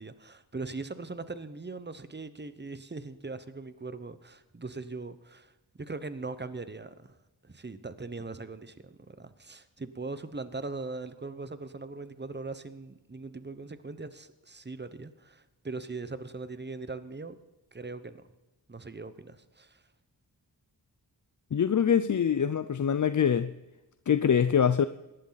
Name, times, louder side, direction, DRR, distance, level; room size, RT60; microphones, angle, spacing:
voice 1, 0.0-5.5 5.8-7.2 7.4-17.4 17.7-18.2 18.7-19.8, right 3 dB, 25° right, 1.0 m, -40 dB
voice 2, 21.5-23.5 24.1-24.9, left 8 dB, 45° left, 0.5 m, -24 dB
18.0 x 11.5 x 4.1 m
cardioid pair, 45°, 43 cm